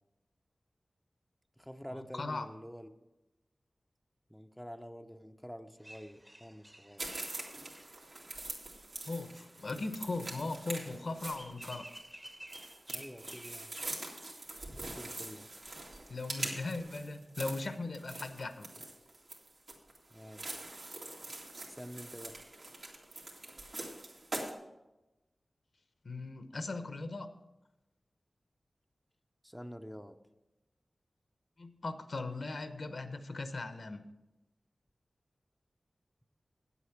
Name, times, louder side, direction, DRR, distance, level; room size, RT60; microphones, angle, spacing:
voice 1, 1.6-2.9 4.3-7.1 12.9-13.7 14.1-14.3 14.8-15.5 20.1-20.4 21.3-22.3 29.4-30.2, equal, ahead, 6 dB, 0.6 m, -48 dB
voice 2, 2.1-2.5 9.1-12.0 16.1-18.7 26.0-27.3 31.6-34.0, left 3 dB, 70° left, 9 dB, 0.8 m, -38 dB
sound 1, 5.8-16.4, right 1 dB, 15° right, 1.0 m, -56 dB
sound 2, 7.0-24.5, right 2 dB, 65° right, 2.3 m, -44 dB
9.1 x 8.3 x 5.8 m, 0.99 s
wide cardioid pair, 85°, 0 cm